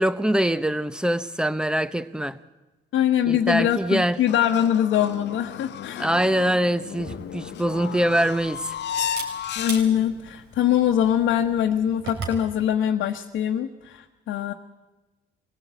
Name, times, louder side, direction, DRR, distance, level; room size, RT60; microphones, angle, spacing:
voice 1, 0.0-2.4 3.3-4.2 6.0-8.8, right 1 dB, 5° right, 0.9 m, -23 dB
voice 2, 2.9-6.1 9.6-14.5, left 10 dB, 80° left, 1.2 m, -23 dB
sound 1, 4.3-10.2, left 9 dB, 60° left, 0.7 m, -34 dB
Camera, 6.9-12.5, right 4 dB, 85° right, 4.3 m, -40 dB
23.5 x 16.5 x 8.2 m
cardioid pair, 90°, 20 cm